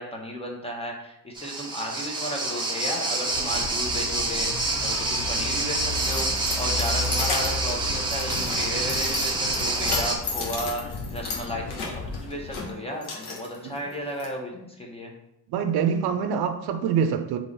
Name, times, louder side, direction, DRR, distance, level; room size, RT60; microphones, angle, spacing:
voice 1, 0.0-15.1, equal, 15° left, 0 dB, 0.8 m, -34 dB
sound 1, 1.3-10.1, right 2 dB, 10° right, 0.8 m, -27 dB
sound 2, 3.3-12.7, left 3 dB, 35° left, 0.4 m, -35 dB
Keys jangling, 5.2-14.2, left 3 dB, 75° left, 1.2 m, -35 dB
voice 2, 15.5-17.4, right 7 dB, 70° right, 7 dB, 0.5 m, -25 dB
3.8 x 3.0 x 3.9 m, 0.81 s
cardioid pair, 120°, 40 cm